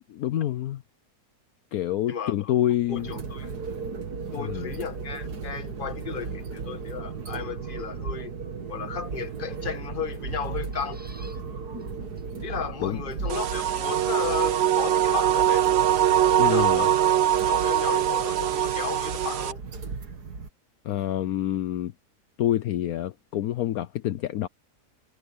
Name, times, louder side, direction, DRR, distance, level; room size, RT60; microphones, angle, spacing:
voice 1, 0.2-0.8 1.7-3.1 4.4-4.7 12.8-13.0 16.4-16.9 20.8-21.9 22.4-24.5, left 12 dB, 70° left, 1.1 m, -27 dB
voice 2, 2.1-2.5 2.9-3.5 4.3-8.3 8.7-11.0 12.4-15.7 16.2-16.9 17.4-19.6, left 7 dB, 35° left, 1.4 m, -34 dB
sound 1, 2.8-20.5, right 5 dB, 80° right, 2.4 m, -36 dB
sound 2, 10.6-11.4 11.8-11.9 12.2-12.3 13.2-13.6 14.9-15.5 16.9-18.6 18.8-18.9, equal, 5° right, 6.7 m, -54 dB
sound 3, 13.3-19.5, right 11 dB, 60° right, 0.7 m, -22 dB
omnidirectional pair, 1.7 m